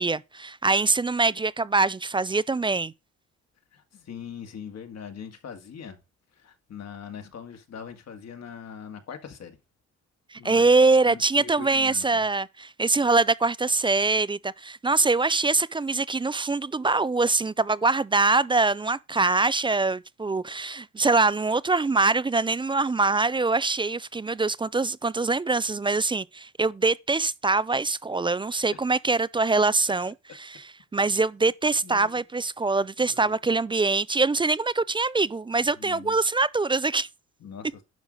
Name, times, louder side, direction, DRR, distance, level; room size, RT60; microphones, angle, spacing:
voice 1, 0.0-2.9 10.3-30.1 30.4-30.5 30.9-37.1, right 3 dB, 15° right, 0.4 m, -23 dB
voice 2, 3.7-6.0 6.3-9.6 10.4-10.7 11.0-12.2 28.7-28.8 31.8-32.2 33.0-33.4 35.6-36.2 37.4-37.8, left 7 dB, 60° left, 1.9 m, -42 dB
10.5 x 3.8 x 6.3 m
cardioid pair, 90°, 30 cm